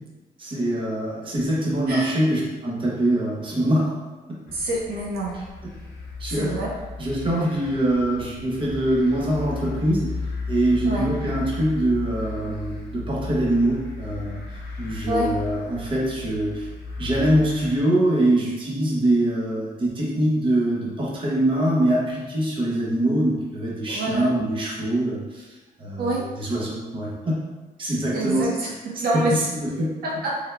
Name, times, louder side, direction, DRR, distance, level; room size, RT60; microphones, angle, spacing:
voice 1, 0.4-3.9 6.2-6.5 7.0-10.1 10.5-14.4 14.8-16.7 17.0-25.5 25.8-27.4 27.8-28.5 29.3-29.9, right 1 dB, 30° right, -4 dB, 0.8 m, -23 dB
sound 1, 4.5-17.7, left 3 dB, 75° left, 0.9 m, -35 dB
voice 2, 4.5-5.3 6.3-6.7 10.8-11.1 15.1-15.3 23.9-24.3 26.0-26.2 28.1-28.7 29.0-29.5 30.0-30.4, right 1 dB, 65° right, -4 dB, 0.8 m, -26 dB
3.5 x 3.2 x 2.3 m, 1.2 s
cardioid pair, 115°, 17 cm